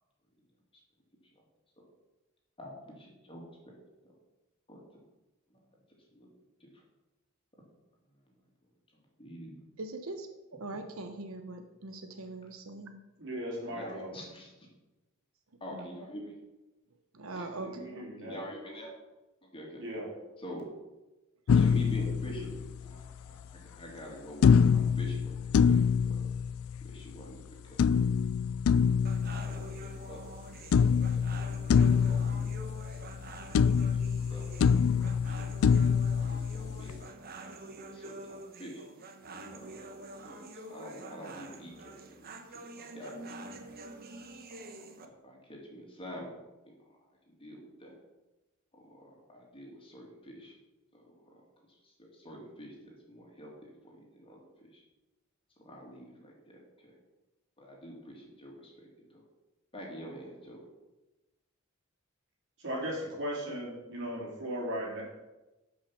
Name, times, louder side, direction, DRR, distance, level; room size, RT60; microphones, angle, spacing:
voice 1, 2.6-3.8 4.0-4.1 4.7-5.0 5.5-5.7 6.1-6.3 6.6-6.8 7.6-7.7 8.9-9.5 13.7-14.7 15.6-16.4 17.4-17.7 18.2-18.9 19.5-19.9 20.4-20.7 21.5-26.3 26.8-28.2 29.1-30.2 30.8-31.4 31.8-32.9 33.2-34.6 35.1-35.5 36.1-37.1 37.4-38.8 39.5-39.9 40.2-43.7 44.5-46.9 47.3-47.9 48.7-50.5 50.9-51.4 51.7-54.8 55.6-57.0 57.6-59.2 59.7-60.6, equal, 25° left, -2 dB, 2.5 m, -47 dB
voice 2, 9.8-13.0 15.7-15.8 17.1-18.2, right 2 dB, 85° right, 6 dB, 0.9 m, -42 dB
voice 3, 13.2-14.1 17.7-18.4 19.8-20.1 62.6-65.0, equal, 60° right, -4 dB, 3.7 m, -37 dB
sound 1, 21.5-23.0 24.4-27.0 27.8-30.4 30.7-33.3 33.5-37.0, left 6 dB, 80° left, 0.3 m, -26 dB
sound 2, 29.0-45.1, right 2 dB, 45° right, 1.1 m, -47 dB
12.0 x 5.6 x 5.7 m, 1.1 s
head